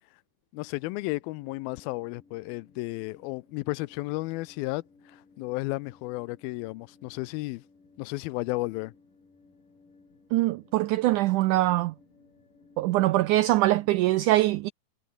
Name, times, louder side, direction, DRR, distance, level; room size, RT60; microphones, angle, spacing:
voice 1, 0.5-7.6 8.0-8.9, left 21 dB, 85° left, 2.4 m, -33 dB
sound 1, 0.8-14.0, left 4 dB, 60° left, 8.9 m, -59 dB
voice 2, 10.3-11.9 12.8-14.7, right 17 dB, 85° right, 1.8 m, -23 dB
omnidirectional pair, 4.2 m